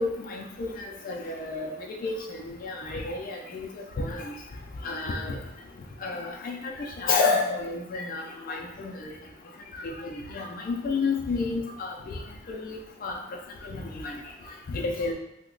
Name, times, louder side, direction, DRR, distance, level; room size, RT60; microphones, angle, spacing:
voice 1, 0.0-1.7 2.0-4.3 4.8-5.4 6.0-9.1 9.7-12.2 12.5-13.2 13.6-14.2 14.7-15.1, left 4 dB, 45° left, 1 dB, 0.3 m, -31 dB
2.8 x 2.1 x 3.7 m, 0.85 s
head